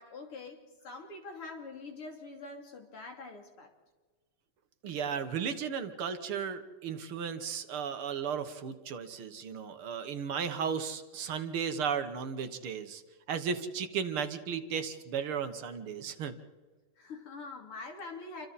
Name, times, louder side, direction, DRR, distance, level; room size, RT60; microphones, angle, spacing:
voice 1, 0.0-3.7 17.0-18.5, left 3 dB, 80° left, 3 dB, 3.9 m, -44 dB
voice 2, 4.8-13.0 13.3-16.3, right 7 dB, 75° right, 9 dB, 2.2 m, -35 dB
28.5 x 25.0 x 4.2 m, 1.4 s
omnidirectional pair, 2.4 m